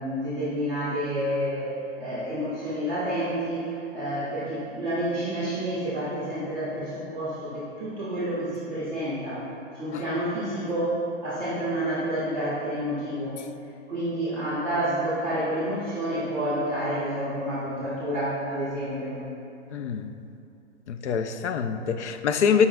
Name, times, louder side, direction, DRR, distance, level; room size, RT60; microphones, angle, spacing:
voice 1, 0.0-9.5 9.7-13.4 13.9-19.2, right 1 dB, 5° left, -12 dB, 0.4 m, -29 dB
voice 2, 19.7-20.1 20.9-22.7, left 6 dB, 70° left, 9 dB, 0.5 m, -25 dB
13.5 x 5.4 x 2.3 m, 2.7 s
hypercardioid pair, 165°, 37 cm